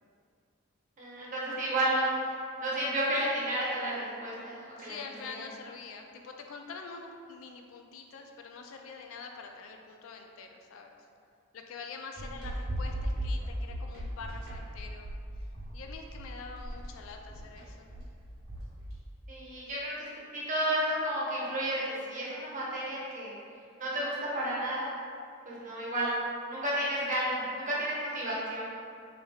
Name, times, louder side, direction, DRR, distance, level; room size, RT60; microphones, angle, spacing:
voice 1, 1.0-5.0 5.2-5.3 19.3-23.3 23.8-24.9 25.4-26.2 26.5-28.6, right 1 dB, 40° right, -7 dB, 0.8 m, -32 dB
voice 2, 4.8-11.0 11.5-15.1 15.7-18.0, left 4 dB, 70° left, 3 dB, 0.3 m, -45 dB
sound 1, 12.2-19.0, equal, 85° right, 1.2 m, -37 dB
3.2 x 3.2 x 2.2 m, 2.4 s
head